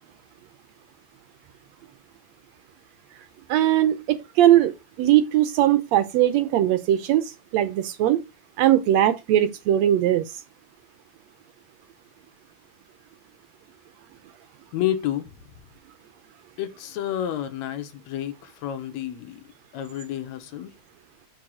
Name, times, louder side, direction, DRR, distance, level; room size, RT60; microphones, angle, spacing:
voice 1, 3.5-8.2 8.6-10.2, right 12 dB, 75° right, 1.8 m, -20 dB
voice 2, 14.7-15.3 16.6-19.4 19.7-20.7, left 11 dB, 75° left, 1.9 m, -30 dB
6.4 x 4.6 x 4.8 m
omnidirectional pair, 3.4 m